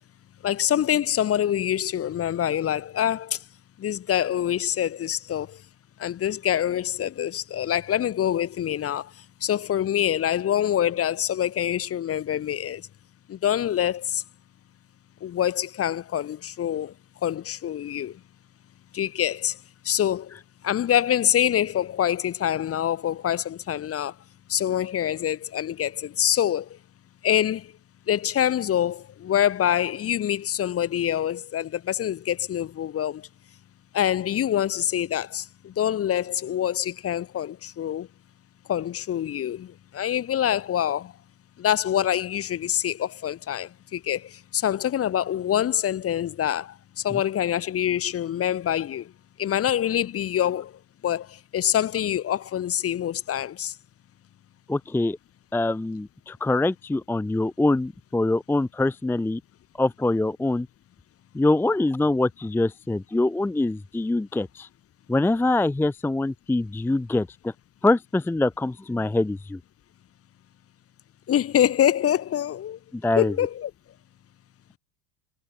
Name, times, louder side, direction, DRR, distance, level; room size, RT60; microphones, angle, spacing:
voice 1, 0.4-3.4 3.8-5.6 6.0-9.1 9.4-12.8 13.3-14.2 15.2-16.9 17.2-18.2 18.9-19.6 19.8-20.4 20.6-24.1 24.5-26.8 27.2-27.7 28.1-33.3 33.9-38.1 38.7-41.1 41.6-49.1 49.4-50.7 51.0-53.7 71.3-72.8 73.2-73.7, left 10 dB, 35° left, 1.0 m, -25 dB
voice 2, 54.7-55.2 55.5-59.4 59.8-60.7 61.3-64.7 65.1-67.5 67.8-69.6 72.9-73.3, left 2 dB, 5° left, 0.5 m, -24 dB
supercardioid pair, 100°, 40 cm